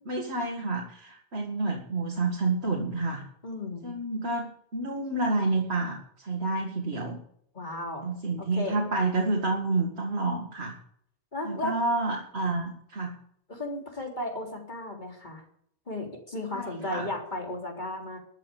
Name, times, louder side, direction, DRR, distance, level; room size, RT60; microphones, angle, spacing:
voice 1, 0.1-3.2 3.8-7.2 8.0-10.8 11.4-13.2 16.5-17.1, right 3 dB, 90° right, 0 dB, 2.3 m, -29 dB
voice 2, 3.4-3.9 7.5-8.1 8.4-8.8 11.3-11.7 13.5-15.4 15.9-18.2, left 2 dB, 45° left, 1 dB, 3.8 m, -35 dB
14.0 x 8.1 x 8.3 m, 0.66 s
omnidirectional pair, 1.1 m